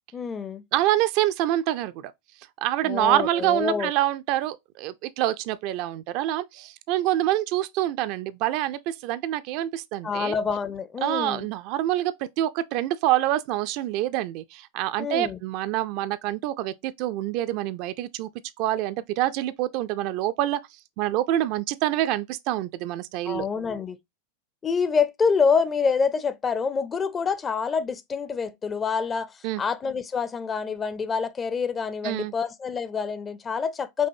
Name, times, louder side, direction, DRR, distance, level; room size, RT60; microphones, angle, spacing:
voice 1, 0.1-0.6 2.8-3.9 10.0-11.5 15.0-15.4 23.2-24.0 24.6-34.1, left 5 dB, 20° left, 0.5 m, -26 dB
voice 2, 0.7-2.1 2.6-10.3 11.0-18.3 18.6-20.6 21.0-23.5 29.4-29.6 32.0-32.3, right 14 dB, 45° right, 0.3 m, -26 dB
5.4 x 2.6 x 2.6 m
figure-of-eight pair, 90°, 0 cm